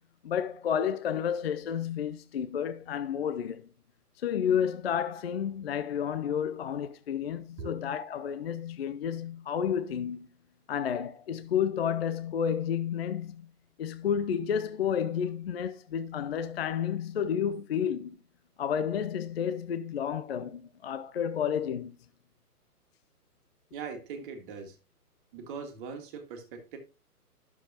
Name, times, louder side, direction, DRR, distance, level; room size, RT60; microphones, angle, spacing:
voice 1, 0.2-3.7 4.2-10.3 10.7-13.5 13.8-18.2 18.6-22.0, left 8 dB, 45° left, 0.4 m, -31 dB
voice 2, 23.7-24.8 25.3-26.8, right 5 dB, 35° right, 1.8 m, -40 dB
9.9 x 6.9 x 2.8 m
figure-of-eight pair, 130°, 47 cm